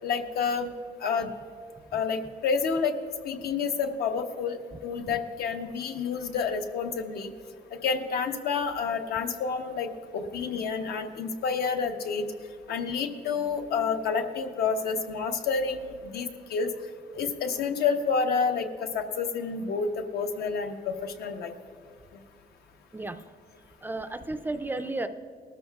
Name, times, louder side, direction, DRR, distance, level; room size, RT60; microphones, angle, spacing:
voice 1, 0.0-0.7 1.0-1.3 1.9-2.9 3.2-7.3 7.8-12.3 12.7-16.7 17.1-21.5, left 5 dB, 80° left, 5 dB, 1.0 m, -29 dB
voice 2, 23.8-25.1, right 2 dB, 15° right, 9 dB, 0.3 m, -33 dB
19.0 x 13.0 x 2.3 m, 2.2 s
cardioid pair, 175°, 16 cm